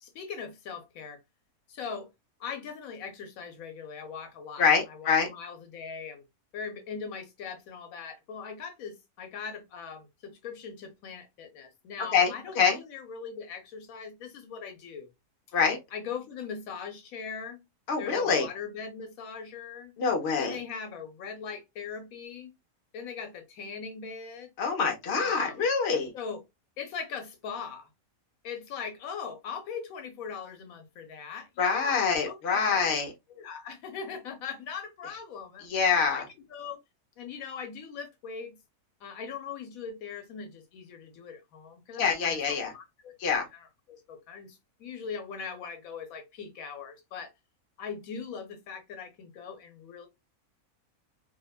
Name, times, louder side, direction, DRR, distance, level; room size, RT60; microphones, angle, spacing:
voice 1, 0.0-1.2 1.7-2.1 2.4-6.2 6.5-15.1 15.9-17.6 18.0-19.9 20.4-22.5 22.9-24.5 25.2-25.6 26.1-26.4 26.8-27.9 28.4-33.0 33.3-35.7 36.1-36.2 36.5-36.8 37.2-38.5 39.0-43.1 43.5-47.3 47.8-50.1, left 6 dB, 80° left, 1.0 m, -40 dB
voice 2, 4.6-5.3 12.1-12.8 15.5-15.8 17.9-18.5 20.0-20.6 24.6-26.1 31.6-33.1 35.6-36.3 42.0-42.7 43.2-43.5, left 5 dB, 55° left, 0.9 m, -25 dB
2.7 x 2.1 x 2.2 m
omnidirectional pair, 1.5 m